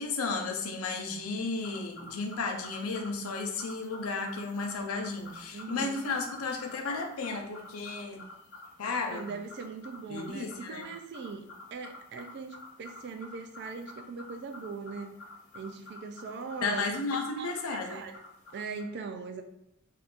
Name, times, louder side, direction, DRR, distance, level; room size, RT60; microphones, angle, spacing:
voice 1, 0.0-8.2 8.8-9.3 10.1-10.9 16.6-18.0, left 3 dB, 85° left, 3 dB, 0.6 m, -33 dB
sound 1, 1.5-18.8, left 2 dB, 55° left, 0.8 m, -49 dB
voice 2, 5.5-6.0 9.1-11.5 11.7-15.1 15.5-16.9 17.4-18.2 18.5-19.4, right 4 dB, 55° right, 7 dB, 0.4 m, -40 dB
2.7 x 2.4 x 3.5 m, 0.83 s
head